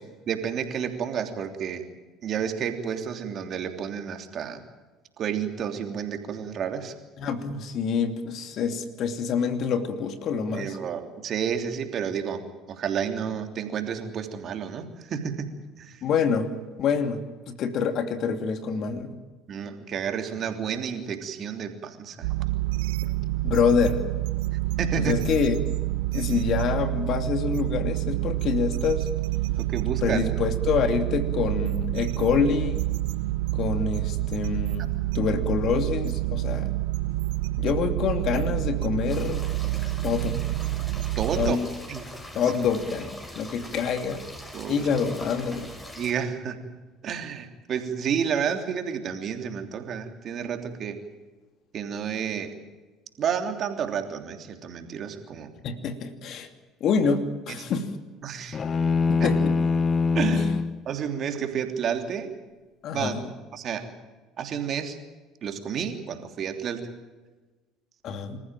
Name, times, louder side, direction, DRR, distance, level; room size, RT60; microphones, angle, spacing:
voice 1, 0.3-1.8 2.2-4.6 5.2-6.9 10.3-15.5 15.8-16.0 19.5-22.3 24.8-25.2 29.5-30.2 41.2-41.6 41.9-42.1 44.5-44.9 46.0-46.8 47.0-51.0 51.7-52.5 53.2-55.5 57.5-57.7 58.2-58.6 60.1-60.5 60.8-62.3 62.9-63.1 63.5-63.9 64.4-65.0 65.4-66.9, right 7 dB, 50° right, 6 dB, 3.1 m, -30 dB
voice 2, 7.2-10.8 16.0-16.5 16.8-19.2 23.0-23.1 23.4-24.1 25.0-25.6 26.1-29.1 30.0-32.8 33.5-36.7 37.6-39.4 40.0-40.4 41.4-41.7 42.3-44.3 44.7-45.7 55.6-56.5 56.8-57.9 59.1-59.5 60.3-60.6 62.8-63.2 68.0-68.4, left 6 dB, 55° left, 8 dB, 2.7 m, -26 dB
sound 1, 22.2-41.5, right 18 dB, 80° right, 1.0 m, -28 dB
sound 2, 39.1-46.1, left 1 dB, 15° left, 6.4 m, -42 dB
sound 3, 58.5-60.8, left 4 dB, 40° left, 0.8 m, -23 dB
26.0 x 14.5 x 9.2 m, 1.3 s
hypercardioid pair, 70°, 0 cm